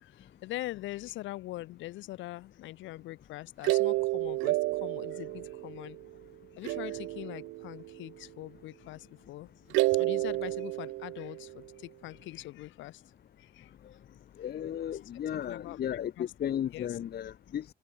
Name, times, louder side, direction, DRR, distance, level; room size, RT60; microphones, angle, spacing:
voice 1, 0.0-6.0 6.5-9.5 9.9-13.0 13.4-13.7 14.9-15.1 15.5-15.8 16.2-16.3 16.7-17.0, left 17 dB, 85° left, 1.5 m, -42 dB
sound 1, 3.6-6.2 6.6-8.1 9.7-11.7, right 21 dB, 90° right, 0.5 m, -31 dB
voice 2, 14.4-17.6, left 10 dB, 55° left, 1.1 m, -34 dB
cardioid pair, 85°, 19 cm